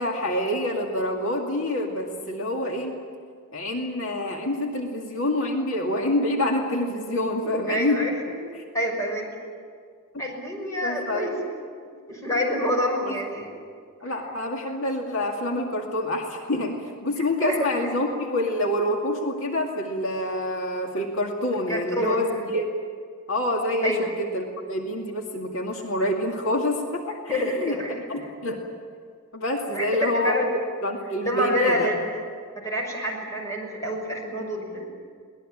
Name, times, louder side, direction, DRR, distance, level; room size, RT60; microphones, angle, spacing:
voice 1, 0.0-2.9 3.5-8.1 8.6-8.7 10.8-11.3 14.0-22.7 23.3-27.8 28.1-28.6 29.3-30.4 30.8-31.9, left 1 dB, 65° left, 1 dB, 2.4 m, -27 dB
voice 2, 7.4-8.4 8.7-9.3 10.2-11.3 12.1-13.5 14.0-14.1 17.4-17.7 21.7-22.5 23.8-24.1 27.3-28.3 29.7-30.5 31.2-32.0 32.6-34.8, equal, 15° left, 0 dB, 5.8 m, -27 dB
22.5 x 19.5 x 9.0 m, 2.1 s
head